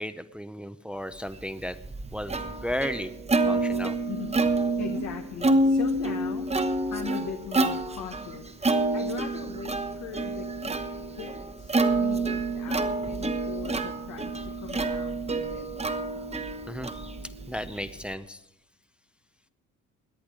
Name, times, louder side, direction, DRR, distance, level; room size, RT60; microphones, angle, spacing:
voice 1, 0.0-1.8 2.1-3.1 3.5-4.0 16.7-16.9 17.5-18.4, equal, 5° right, 11 dB, 0.7 m, -34 dB
Plucked string instrument, 1.4-18.1, right 2 dB, 20° right, 1.1 m, -28 dB
voice 2, 4.1-4.4 4.8-10.5 11.1-15.7, left 7 dB, 70° left, 4 dB, 1.4 m, -40 dB
18.0 x 10.5 x 5.0 m, 0.81 s
cardioid pair, 90°, 30 cm